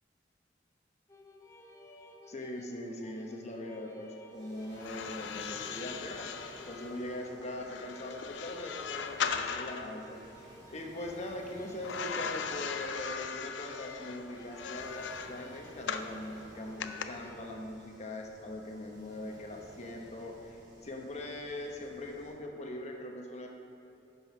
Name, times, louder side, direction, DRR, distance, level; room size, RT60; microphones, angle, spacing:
sound 1, 1.1-17.4, left 1 dB, 15° left, 0.6 m, -56 dB
voice 1, 2.3-23.5, left 1 dB, 40° left, 1 dB, 1.0 m, -41 dB
Waves surf, 4.3-22.4, equal, 25° right, 1.8 m, -56 dB
sound 2, 4.8-9.9 11.8-16.1 16.8-17.0, left 6 dB, 85° left, 0.5 m, -38 dB
9.7 x 5.5 x 5.9 m, 2.8 s
head